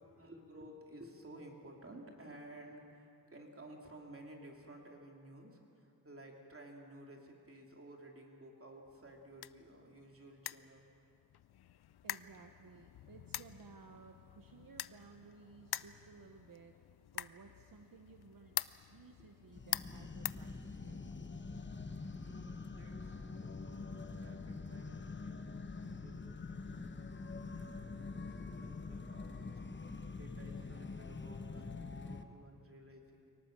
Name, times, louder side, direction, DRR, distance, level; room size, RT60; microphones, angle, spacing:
voice 1, 0.0-10.9 22.2-29.6 30.1-33.3, right 1 dB, 35° right, 0 dB, 3.0 m, -55 dB
sound 1, 8.9-21.1, left 12 dB, 85° left, 0.5 m, -46 dB
voice 2, 12.0-16.8 17.1-18.6 18.9-21.2, right 5 dB, 65° right, 5 dB, 1.1 m, -58 dB
sound 2, 19.5-32.2, left 4 dB, 30° left, 1.0 m, -45 dB
24.5 x 18.0 x 7.4 m, 2.6 s
wide cardioid pair, 120°, 38 cm